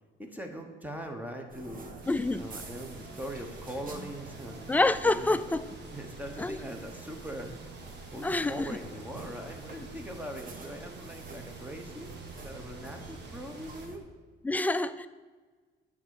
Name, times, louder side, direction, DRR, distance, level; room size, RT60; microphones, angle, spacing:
voice 1, 0.2-2.0 2.4-4.7 5.0-5.4 5.9-7.6 8.1-12.1 12.4-14.0, equal, 10° right, 1.2 m, -41 dB
sound 1, 1.5-14.0, right 3 dB, 45° right, 1.2 m, -46 dB
sound 2, 2.0-13.9, right 3 dB, 60° right, 1.6 m, -51 dB
voice 2, 2.1-2.4 4.7-5.7 6.4-6.6 8.2-8.7 14.4-15.1, left 2 dB, 10° left, 0.3 m, -27 dB
9.6 x 3.8 x 6.6 m
cardioid pair, 90°, 20 cm